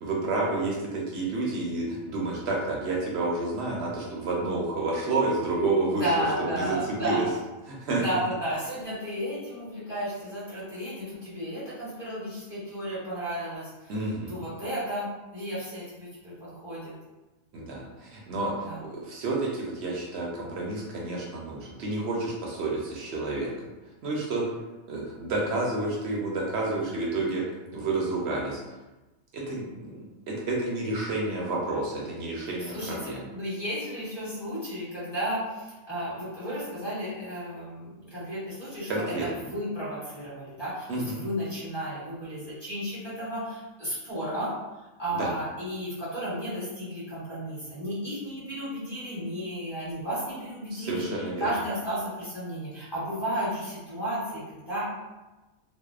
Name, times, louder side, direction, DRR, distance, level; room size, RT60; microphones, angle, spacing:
voice 1, 0.0-6.1 6.4-6.8 7.0-7.3 7.7-8.0 13.9-14.4 17.5-23.5 24.0-24.5 24.9-27.4 27.7-28.6 29.3-33.2 38.9-39.3 40.9-41.2 45.1-45.3 50.7-51.5, right 2 dB, 65° right, -3 dB, 0.7 m, -30 dB
voice 2, 5.9-7.3 7.9-14.0 14.3-16.9 18.6-18.8 32.4-44.6 45.0-54.9, equal, 20° left, -11 dB, 1.1 m, -33 dB
2.6 x 2.1 x 2.3 m, 1.1 s
omnidirectional pair, 1.4 m